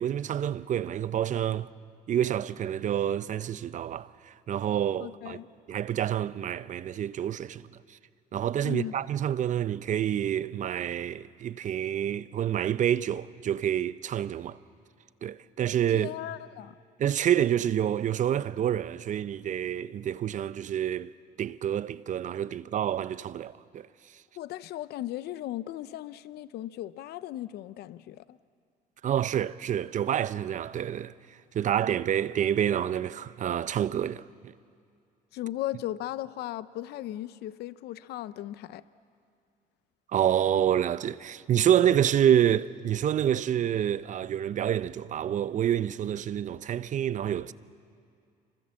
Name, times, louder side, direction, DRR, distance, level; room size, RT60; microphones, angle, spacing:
voice 1, 0.0-1.7 2.1-5.4 5.7-7.7 8.3-14.6 15.2-16.1 17.0-21.1 21.4-23.9 29.0-31.1 31.5-34.2 40.1-47.5, right 10 dB, 50° right, 0.7 m, -28 dB
voice 2, 5.0-5.5 8.6-8.9 15.9-16.7 24.4-28.4 35.3-38.8, left 14 dB, 75° left, 0.7 m, -37 dB
28.5 x 25.0 x 7.6 m
cardioid pair, 110°, 17 cm